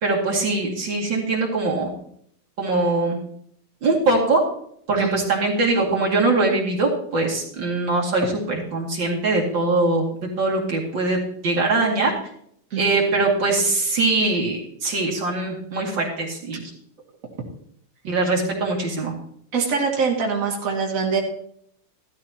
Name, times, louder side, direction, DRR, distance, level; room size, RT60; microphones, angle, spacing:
voice 1, 0.0-1.9 2.6-3.2 3.8-4.4 4.9-8.2 8.7-10.0 10.4-12.1 12.8-16.6 18.0-19.1, right 3 dB, 60° right, -2 dB, 3.0 m, -22 dB
voice 2, 5.0-5.4 12.7-13.0 19.5-21.2, right 5 dB, 40° right, -2 dB, 2.3 m, -24 dB
15.0 x 13.0 x 2.9 m, 0.67 s
omnidirectional pair, 2.4 m